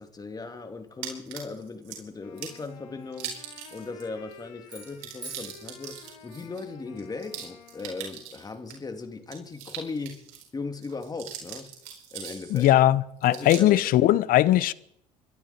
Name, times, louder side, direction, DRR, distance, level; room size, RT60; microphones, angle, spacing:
voice 1, 0.0-3.3 3.7-10.2 10.5-11.7 12.1-12.7 13.3-13.8, left 4 dB, 25° left, 2.7 m, -38 dB
sound 1, 1.0-2.0 2.4-2.7 3.1-4.0 4.3-4.4 4.7-8.7 9.2-10.5 10.8-12.7 13.2-13.8, right 9 dB, 75° right, 4.5 m, -41 dB
Wind instrument woodwind instrument, 2.2-8.4, left 7 dB, 85° left, 1.8 m, -52 dB
sound 2, 4.6-6.9, right 2 dB, 25° right, 5.1 m, -48 dB
voice 2, 12.5-14.7, left 14 dB, 60° left, 0.8 m, -20 dB
25.5 x 12.0 x 4.4 m
supercardioid pair, 80°, 17 cm